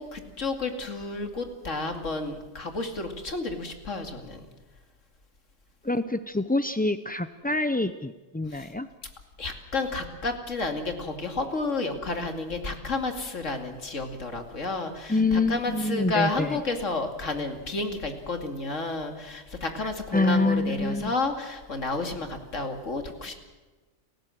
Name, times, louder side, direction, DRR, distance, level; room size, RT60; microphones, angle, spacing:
voice 1, 0.0-4.4 8.5-8.7 9.4-15.2 15.5-23.3, left 3 dB, 90° left, 5 dB, 2.8 m, -31 dB
voice 2, 5.8-8.9 15.1-16.6 20.1-21.1, left 2 dB, 15° left, 11 dB, 0.3 m, -26 dB
30.0 x 15.5 x 7.7 m, 1.3 s
omnidirectional pair, 1.3 m